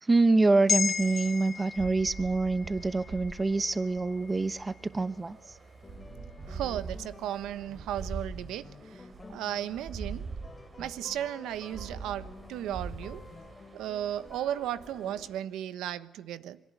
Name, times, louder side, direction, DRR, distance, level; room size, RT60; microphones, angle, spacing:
voice 1, 0.0-5.6, right 3 dB, 20° right, 1.1 m, -26 dB
sound 1, 0.7-5.2 5.6-5.7, left 6 dB, 50° left, 1.8 m, -35 dB
sound 2, 0.8-15.4, right 4 dB, 40° right, 4.8 m, -44 dB
sound 3, 5.8-15.2, left 3 dB, 25° left, 3.2 m, -51 dB
voice 2, 6.5-10.3 10.8-13.2 13.7-16.6, right 11 dB, 85° right, 1.3 m, -35 dB
26.0 x 23.0 x 9.6 m
cardioid pair, 90°, 0 cm